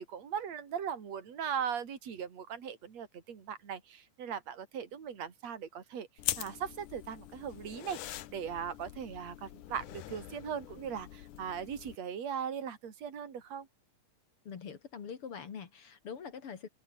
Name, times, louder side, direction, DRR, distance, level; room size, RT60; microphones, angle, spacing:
voice 1, 0.0-6.1 6.4-13.7, right 8 dB, 55° right, 4.2 m, -39 dB
sound 1, 6.2-12.0, left 13 dB, 80° left, 2.7 m, -42 dB
voice 2, 14.4-16.7, left 6 dB, 45° left, 2.7 m, -44 dB
open air
omnidirectional pair, 3.7 m